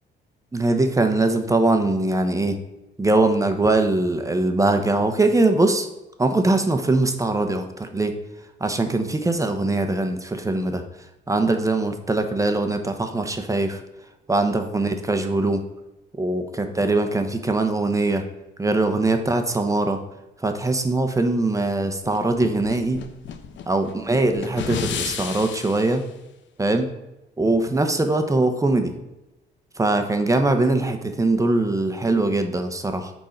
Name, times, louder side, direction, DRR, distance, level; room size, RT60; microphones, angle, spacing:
voice 1, 0.5-2.6 3.0-5.9 6.2-8.2 8.6-10.8 11.3-13.8 14.3-15.6 16.2-18.2 18.6-20.0 20.4-23.0 23.7-26.0 26.6-26.9 27.4-28.9 29.8-33.1, right 2 dB, 15° right, 6 dB, 0.9 m, -22 dB
sound 1, 22.0-25.9, left 8 dB, 70° left, 0.8 m, -32 dB
6.7 x 4.6 x 5.2 m, 0.97 s
cardioid pair, 90°, 20 cm